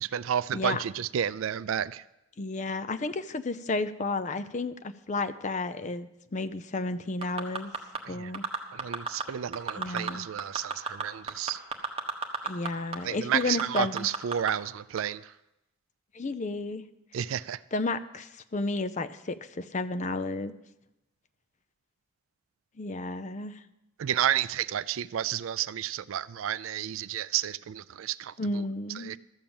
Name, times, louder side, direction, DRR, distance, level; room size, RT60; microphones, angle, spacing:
voice 1, 0.0-2.0 8.1-8.3 8.7-11.6 13.0-15.3 17.1-17.6 24.0-28.3 29.0-29.2, right 9 dB, 80° right, 0.4 m, -31 dB
voice 2, 2.4-7.7 8.1-8.4 9.8-10.3 12.4-14.1 16.1-16.8 17.7-20.5 22.8-23.6 28.4-29.1, left 3 dB, 35° left, 0.5 m, -32 dB
sound 1, 7.2-8.0 8.3-9.2 9.5-10.1 10.4-12.7 12.9-13.0 13.4-14.5 15.0-15.1, right 5 dB, 30° right, 1.1 m, -31 dB
13.0 x 7.3 x 7.0 m
head